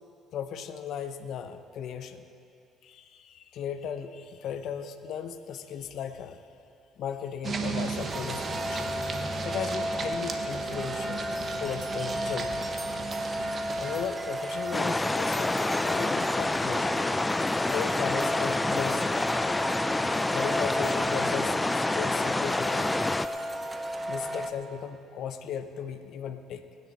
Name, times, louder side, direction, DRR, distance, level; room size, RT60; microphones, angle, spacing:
voice 1, 0.3-2.2 2.8-6.4 7.0-8.9 9.4-12.7 13.8-15.5 15.8-16.9 17.7-19.3 20.1-23.1 24.1-26.7, left 8 dB, 65° left, 9 dB, 0.8 m, -36 dB
sound 1, 7.4-14.0, right 4 dB, 40° right, 1.1 m, -35 dB
sound 2, 8.0-24.5, equal, 20° right, 0.8 m, -34 dB
sound 3, 14.7-23.3, left 2 dB, 15° left, 0.4 m, -27 dB
20.0 x 9.4 x 4.2 m, 2.6 s
supercardioid pair, 85°, 0 cm